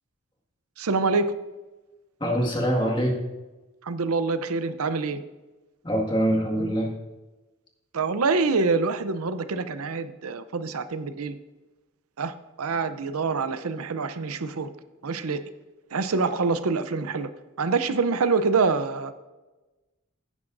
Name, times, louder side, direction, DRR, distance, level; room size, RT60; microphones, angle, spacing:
voice 1, 0.8-1.3 3.8-5.2 7.9-11.4 12.2-14.7 15.0-15.4 15.9-17.3 17.6-19.1, right 4 dB, 80° right, 11 dB, 0.6 m, -26 dB
voice 2, 2.2-3.2 5.8-6.9, equal, 20° left, 0 dB, 1.9 m, -24 dB
16.5 x 9.7 x 2.6 m, 1.1 s
head